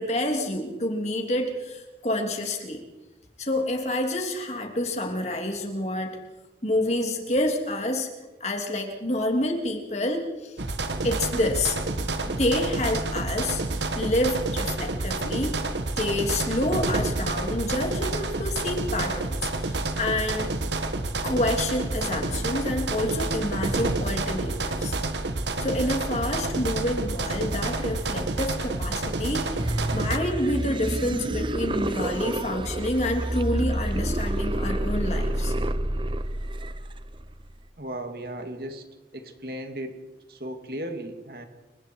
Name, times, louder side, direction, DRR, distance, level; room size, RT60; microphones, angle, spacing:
voice 1, 0.0-2.8 3.4-6.2 6.6-8.1 8.4-10.6 11.0-11.8 12.2-13.6 14.0-15.6 16.0-20.5 21.2-25.0 25.6-35.5, left 1 dB, 40° left, 2 dB, 3.2 m, -28 dB
sound 1, 10.6-30.2, right 2 dB, 85° right, 1.8 m, -29 dB
sound 2, 29.6-37.6, right 1 dB, 30° right, 0.9 m, -28 dB
voice 2, 37.8-38.9 39.1-40.0 40.3-41.5, right 1 dB, 55° right, 5 dB, 2.6 m, -36 dB
29.5 x 24.0 x 4.8 m, 1.1 s
head